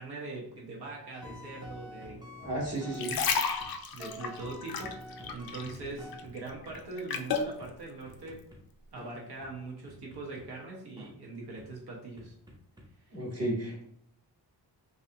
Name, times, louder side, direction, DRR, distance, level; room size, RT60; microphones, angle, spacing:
voice 1, 0.0-2.3 3.9-8.4 8.9-12.3 13.0-13.2, right 3 dB, 65° right, -2 dB, 0.9 m, -42 dB
sound 1, 1.1-3.7 4.0-6.8 7.1-7.3 7.6-7.7 8.1-8.6 9.0-9.1 9.4-9.5 9.9-10.5 11.0-11.1 11.6-11.7 12.2-12.9, left 1 dB, 10° right, 0.5 m, -47 dB
voice 2, 2.4-3.2 13.1-13.8, right 1 dB, 35° right, -6 dB, 1.2 m, -33 dB
sound 2, 2.8-5.8 6.1-7.5 8.1-8.3, left 6 dB, 60° left, 0.5 m, -32 dB
3.3 x 2.5 x 2.6 m, 0.68 s
wide cardioid pair, 145°, 42 cm